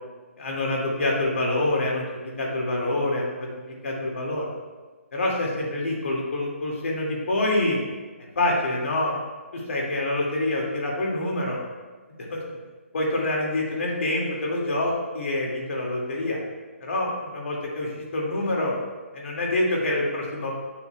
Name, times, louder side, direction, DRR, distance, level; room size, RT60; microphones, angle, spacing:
voice 1, 0.4-4.5 5.1-7.8 8.4-9.2 9.5-11.6 12.3-12.4 12.9-16.4 16.8-18.7 19.1-20.5, left 1 dB, 65° left, -3 dB, 2.1 m, -26 dB
9.0 x 6.9 x 2.3 m, 1.3 s
hypercardioid pair, 160°, 8 cm